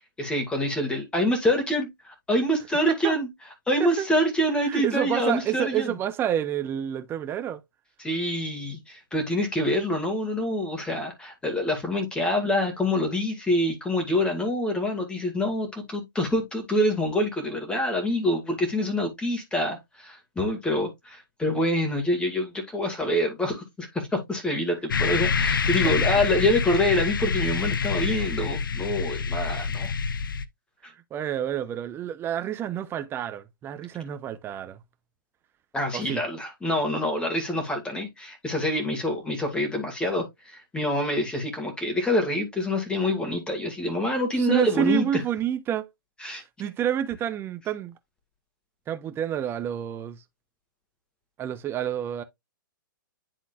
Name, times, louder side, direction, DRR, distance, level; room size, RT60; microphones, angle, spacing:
voice 1, 0.0-3.3 3.7-6.0 8.0-29.9 35.7-45.1 46.2-46.4, left 1 dB, 10° left, 2.1 m, -26 dB
voice 2, 4.6-7.6 30.8-34.8 35.9-36.2 44.4-45.9 46.3-47.9 48.9-50.2 51.4-52.2, right 10 dB, 20° right, 0.8 m, -29 dB
sound 1, 24.9-30.4, left 5 dB, 80° left, 0.6 m, -26 dB
10.5 x 3.8 x 2.4 m
hypercardioid pair, 125°, 11 cm